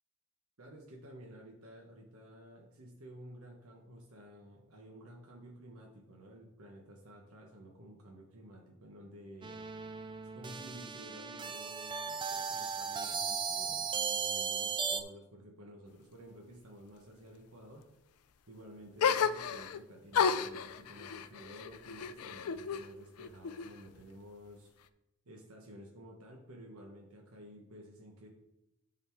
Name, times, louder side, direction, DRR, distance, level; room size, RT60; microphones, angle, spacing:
voice 1, 0.6-9.5 10.3-17.8 18.5-24.7 25.2-28.3, equal, 70° right, -1 dB, 1.2 m, -52 dB
sound 1, 9.4-15.0, right 6 dB, 20° right, 0.4 m, -36 dB
sound 2, 19.0-19.8 20.1-22.9 23.2-24.0, left 6 dB, 80° left, 0.4 m, -32 dB
10.5 x 4.1 x 4.5 m, 0.89 s
head